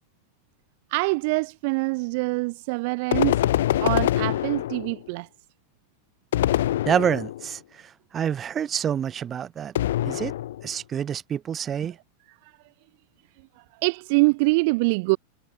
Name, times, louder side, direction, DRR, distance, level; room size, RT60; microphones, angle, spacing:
voice 1, 0.9-3.4 3.8-5.3 12.4-12.5 13.8-15.2, right 28 dB, 45° right, 2.9 m, -24 dB
sound 1, 3.1-5.1 6.3-7.5 9.7-10.7, left 13 dB, 60° left, 2.0 m, -24 dB
voice 2, 6.9-9.7 10.0-10.3 10.6-12.0, right 8 dB, 25° right, 6.0 m, -27 dB
figure-of-eight pair, 90°, 0 cm